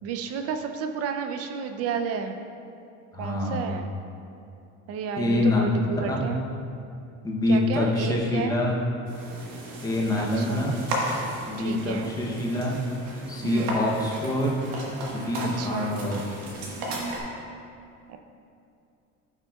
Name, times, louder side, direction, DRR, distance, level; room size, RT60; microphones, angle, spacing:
voice 1, 0.0-2.4 3.2-3.9 4.9-6.4 7.5-8.6 10.2-10.7 11.6-12.1 13.4-13.9 15.4-16.0 18.1-18.2, right 6 dB, 50° right, 6 dB, 0.5 m, -32 dB
voice 2, 3.1-3.7 5.2-5.6 6.1-6.2 7.2-8.8 9.8-10.8 11.4-12.8 13.3-14.6 15.1-16.2, left 1 dB, 10° left, -3 dB, 0.7 m, -25 dB
sound 1, 9.1-17.2, right 1 dB, 80° right, 1.4 m, -35 dB
11.0 x 5.8 x 2.3 m, 2.5 s
cardioid pair, 175°, 31 cm